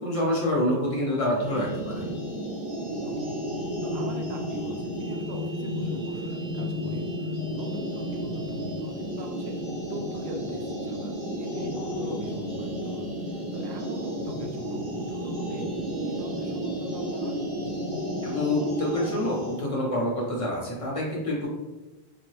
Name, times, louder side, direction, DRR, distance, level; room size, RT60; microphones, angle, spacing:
voice 1, 0.0-2.0 18.2-21.5, left 1 dB, 40° left, -4 dB, 0.7 m, -27 dB
sound 1, 1.3-19.6, equal, 55° right, 1.5 m, -32 dB
voice 2, 3.0-3.4 3.8-11.1 11.4-17.4, right 2 dB, 85° right, 2 dB, 0.8 m, -41 dB
2.7 x 2.4 x 3.0 m, 1.1 s
omnidirectional pair, 1.1 m